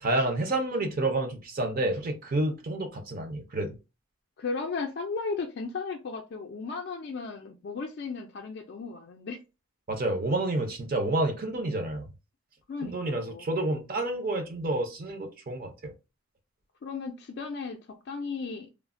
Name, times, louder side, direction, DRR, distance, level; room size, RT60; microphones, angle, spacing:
voice 1, 0.0-3.8 9.9-12.1 12.8-15.9, right 2 dB, 45° right, 0.5 m, -29 dB
voice 2, 4.4-9.4 12.7-13.5 16.8-17.8 18.1-18.7, left 4 dB, 50° left, 0.3 m, -35 dB
3.1 x 2.0 x 2.4 m
head